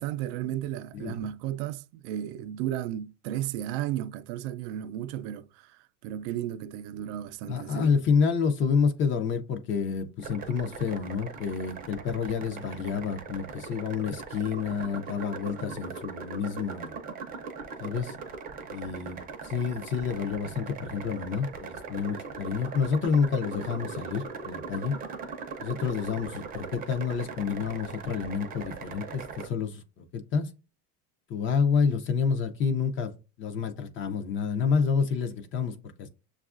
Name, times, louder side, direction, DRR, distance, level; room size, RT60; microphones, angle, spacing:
voice 1, 0.0-8.0, right 12 dB, 80° right, 0.5 m, -34 dB
voice 2, 7.5-16.9 17.8-18.2 18.7-19.2 19.4-24.9 25.6-30.5 31.3-33.1 33.4-36.1, left 6 dB, 35° left, 0.5 m, -29 dB
sound 1, 10.2-29.5, right 5 dB, 25° right, 0.5 m, -40 dB
6.8 x 2.4 x 2.4 m
cardioid pair, 155°, 37 cm